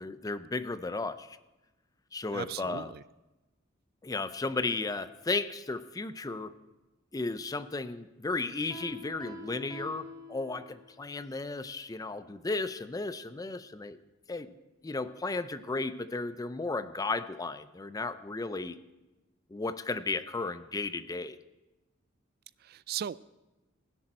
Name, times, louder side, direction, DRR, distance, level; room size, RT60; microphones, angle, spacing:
voice 1, 0.0-1.4 2.1-2.9 4.0-6.5 7.1-14.0 14.3-14.5 14.8-18.8 19.5-21.4, left 3 dB, 20° left, 0.4 m, -34 dB
voice 2, 2.3-3.0 22.6-23.2, right 9 dB, 50° right, 0.3 m, -37 dB
Piano, 8.7-11.0, left 1 dB, ahead, 2.1 m, -46 dB
16.5 x 10.5 x 4.4 m
head